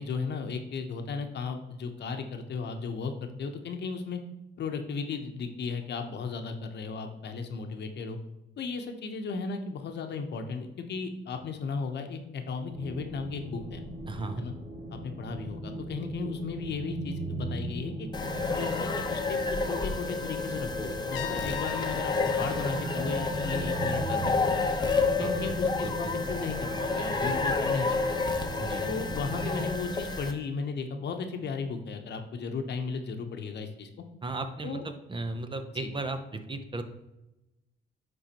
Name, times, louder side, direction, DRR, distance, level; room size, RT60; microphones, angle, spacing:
voice 1, 0.0-4.2 4.6-8.2 8.6-13.8 14.4-14.5 14.9-18.1 18.5-24.7 25.2-28.3 28.9-33.9 34.6-34.8 35.7-35.9, left 5 dB, 60° left, 6 dB, 0.9 m, -35 dB
sound 1, 12.7-29.7, right 1 dB, 50° right, 2.0 m, -38 dB
voice 2, 14.1-14.4 25.2-26.1 27.2-27.3 28.6-28.9 34.2-36.8, right 2 dB, 25° right, 8 dB, 0.7 m, -36 dB
sound 2, 18.1-30.3, left 3 dB, 20° left, 0.8 m, -30 dB
Trumpet, 21.1-24.0, left 11 dB, 80° left, 0.5 m, -40 dB
10.5 x 3.9 x 2.9 m, 0.95 s
cardioid pair, 90°, 20 cm